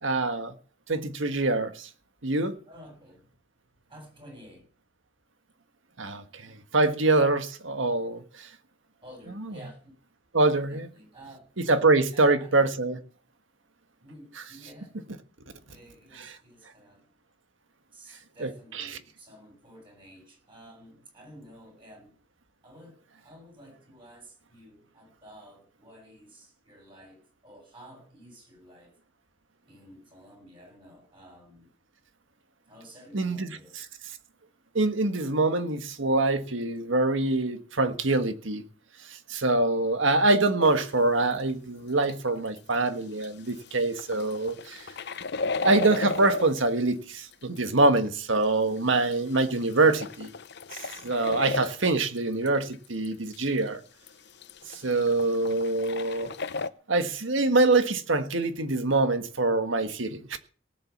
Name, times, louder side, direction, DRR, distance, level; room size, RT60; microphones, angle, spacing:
voice 1, 0.0-0.5 0.9-1.9 2.2-2.6 6.0-8.5 10.3-10.9 11.6-13.0 18.4-18.5 18.8-18.9 33.1-33.6 34.7-38.6 39.1-44.9 45.6-50.3 50.7-53.8 54.7-56.3 56.9-60.4, right 2 dB, 80° right, 1.6 m, -25 dB
voice 2, 2.7-3.3 3.9-4.7 9.0-9.9 10.7-11.4 12.1-12.5 14.0-14.9 15.7-17.0 17.9-22.1 22.6-29.0 29.7-31.7 32.7-33.8, equal, 25° right, 7.8 m, -51 dB
Old Coffee Maker, 40.6-41.0 41.5-41.6 42.1-42.2 42.6-42.7 42.9-43.0 43.2-43.7 44.0-46.8 47.3-48.0 48.8-51.9 52.2-52.5 52.7-52.8 53.1-53.2 53.3-53.4 53.7-53.8 54.1-54.2 54.4-56.7, left 4 dB, 60° left, 0.8 m, -34 dB
18.5 x 7.8 x 7.2 m
head